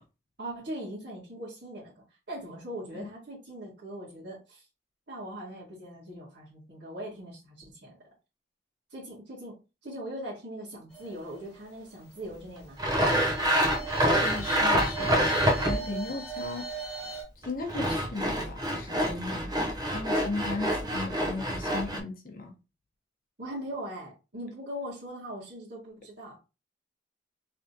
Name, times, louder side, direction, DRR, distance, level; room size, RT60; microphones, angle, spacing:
voice 1, 0.4-4.6 5.1-8.0 8.9-9.6 9.8-13.2 23.4-26.4, equal, 70° right, 1.8 m, -40 dB
sound 1, 10.9-12.1 12.7-17.2, right 6 dB, 5° left, 1.4 m, -39 dB
Sawing, 12.8-16.0 17.4-22.0, equal, 20° right, 0.7 m, -27 dB
voice 2, 14.2-16.7 17.4-22.5, left 3 dB, 50° left, 0.9 m, -37 dB
3.4 x 3.4 x 2.8 m
head